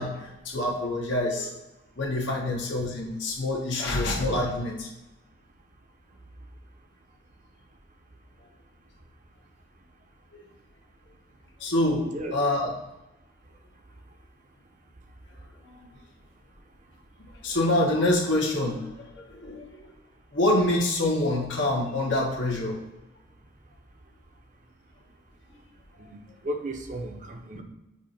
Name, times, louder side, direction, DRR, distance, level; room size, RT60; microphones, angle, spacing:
voice 1, 0.0-1.5 2.0-4.9 11.6-12.7 15.7-15.8 17.4-19.9 20.3-22.8, left 1 dB, 75° left, -2 dB, 1.6 m, -26 dB
voice 2, 26.4-27.6, right 1 dB, 40° right, 4 dB, 0.7 m, -35 dB
7.1 x 2.7 x 5.8 m, 1.0 s
head